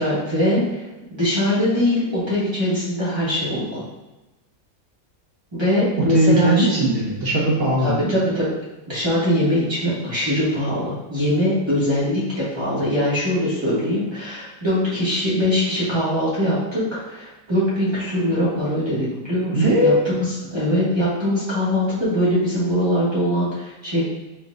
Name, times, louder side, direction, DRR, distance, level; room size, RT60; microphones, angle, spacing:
voice 1, 0.0-3.8 5.5-6.7 7.8-8.4 8.9-20.3 20.5-24.0, left 1 dB, 15° right, -9 dB, 1.4 m, -22 dB
voice 2, 6.1-8.1 19.5-20.0, right 1 dB, 45° right, -5 dB, 0.8 m, -18 dB
4.3 x 4.0 x 2.4 m, 1.0 s
omnidirectional pair, 2.1 m